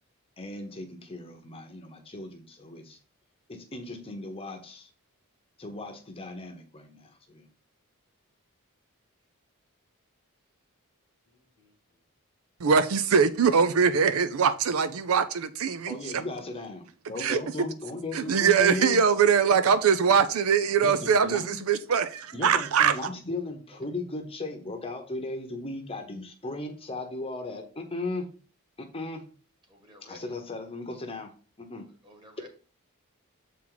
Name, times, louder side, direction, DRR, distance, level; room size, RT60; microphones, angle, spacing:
voice 1, 0.4-3.0 3.5-4.9 5.6-7.5 15.9-19.0 20.8-21.6 22.3-28.3 28.8-29.3 30.0-31.9, left 2 dB, 25° left, 0.9 m, -37 dB
voice 2, 12.6-16.0 17.2-17.4 18.1-22.9, right 6 dB, 65° right, 0.4 m, -22 dB
voice 3, 29.7-30.2 32.0-32.5, left 1 dB, 20° right, 1.8 m, -51 dB
7.2 x 4.5 x 3.9 m
head